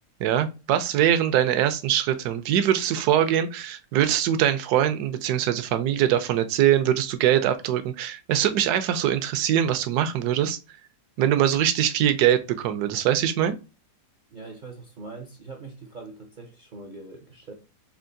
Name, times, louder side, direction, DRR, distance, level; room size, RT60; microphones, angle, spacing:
voice 1, 0.2-10.6 11.2-13.6, right 10 dB, 75° right, 1.1 m, -22 dB
voice 2, 14.3-17.5, right 3 dB, 55° right, 0.5 m, -42 dB
4.5 x 2.5 x 2.5 m
omnidirectional pair, 1.7 m